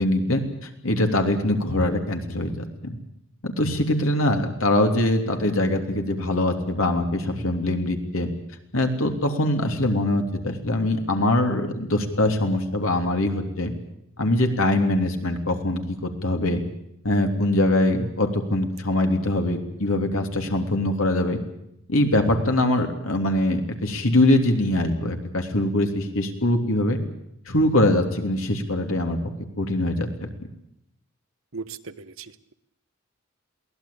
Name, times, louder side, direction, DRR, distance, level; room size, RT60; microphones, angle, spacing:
voice 1, 0.0-3.0 3.4-8.3 8.7-13.7 14.2-16.6 17.0-21.4 21.9-27.0 27.5-29.3 29.6-30.3, left 1 dB, 90° left, 4 dB, 3.2 m, -23 dB
voice 2, 31.5-32.5, right 4 dB, 80° right, 12 dB, 1.1 m, -38 dB
23.0 x 17.5 x 8.7 m, 0.79 s
head